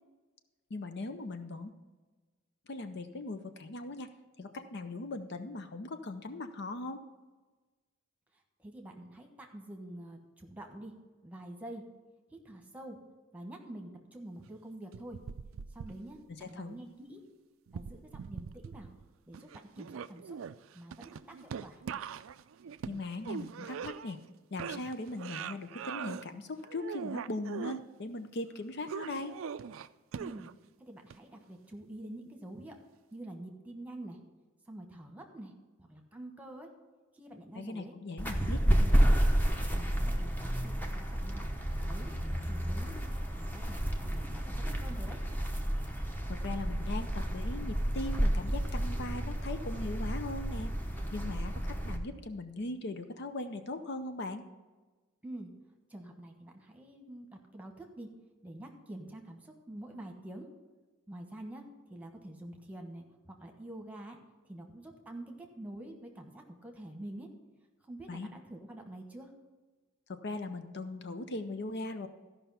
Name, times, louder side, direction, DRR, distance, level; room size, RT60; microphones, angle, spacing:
voice 1, 0.7-1.7 2.7-4.1 4.4-7.0 16.4-16.7 22.9-24.2 24.5-29.3 37.5-38.8 46.3-50.7 51.1-54.4 68.1-68.3 70.1-72.1, left 2 dB, 55° left, 9 dB, 0.6 m, -39 dB
voice 2, 8.6-10.9 11.2-11.8 12.3-13.0 13.3-15.2 15.7-17.2 17.7-18.9 19.3-19.5 19.8-20.4 20.7-21.8 30.2-30.5 30.8-32.8 33.1-34.2 34.7-35.5 35.8-36.7 37.1-37.9 38.3-39.0 39.7-41.5 41.8-42.1 42.4-43.1 43.4-45.2 55.2-55.5 55.9-57.3 57.5-58.1 58.4-60.5 61.1-61.6 61.9-64.2 64.5-67.3 67.8-69.3, right 1 dB, 5° right, 2 dB, 1.3 m, -47 dB
sound 1, 14.9-16.4 17.7-19.1 19.3-24.3 24.6-26.2 26.6-27.8 28.9-30.7 31.1-31.2, right 7 dB, 75° right, 0.4 m, -41 dB
sound 2, 38.2-52.0, equal, 10° left, 0.9 m, -31 dB
14.0 x 5.6 x 5.6 m, 1.3 s
head